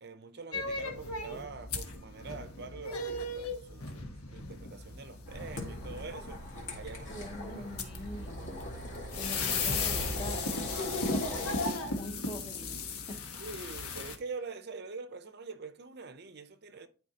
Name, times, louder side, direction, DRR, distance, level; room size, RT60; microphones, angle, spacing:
voice 1, 0.0-6.5 6.7-7.3 7.5-7.7 13.4-16.9, right 4 dB, 45° right, 0.6 m, -45 dB
sound 1, 0.5-14.2, left 3 dB, 85° left, 1.2 m, -37 dB
sound 2, 5.3-11.7, left 1 dB, 55° left, 2.4 m, -41 dB
voice 2, 7.1-8.7 9.1-11.5 11.9-13.2, left 1 dB, 25° left, 0.8 m, -44 dB
11.5 x 4.5 x 2.8 m
head